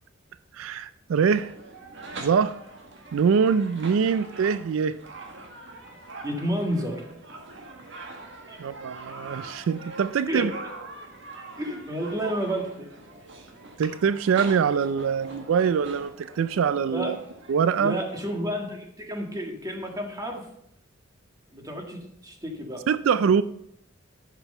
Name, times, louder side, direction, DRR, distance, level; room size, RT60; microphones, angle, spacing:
voice 1, 0.5-1.5 2.2-2.6 3.1-5.0 8.6-10.5 13.8-17.2 17.5-18.0 22.9-23.4, right 6 dB, 85° right, 14 dB, 0.4 m, -23 dB
sound 1, 1.3-18.3, right 2 dB, 65° right, 1.7 m, -43 dB
voice 2, 6.2-7.0 8.5-8.6 10.3-10.5 11.6-12.9 16.9-17.1 17.8-20.4 21.5-22.8, equal, 20° right, 2 dB, 1.7 m, -30 dB
11.5 x 6.1 x 5.4 m, 0.74 s
head